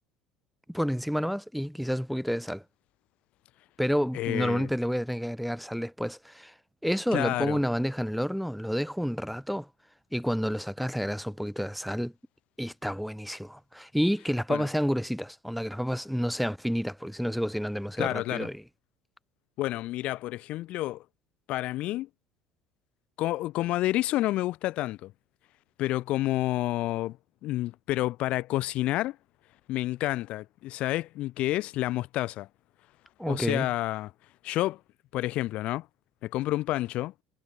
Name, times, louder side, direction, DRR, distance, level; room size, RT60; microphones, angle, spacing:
voice 1, 0.7-2.6 3.8-6.5 6.8-9.7 10.1-12.1 12.6-18.6 33.2-33.7, equal, ahead, 0.8 m, -29 dB
voice 2, 4.1-4.7 7.1-7.6 14.5-14.7 18.0-18.5 19.6-21.0 21.5-22.1 23.2-25.1 25.8-27.2 27.4-29.2 29.7-32.5 33.2-34.1 34.4-34.8 35.1-35.9 36.2-37.1, left 16 dB, 60° left, 0.4 m, -29 dB
supercardioid pair, 105°, 2 cm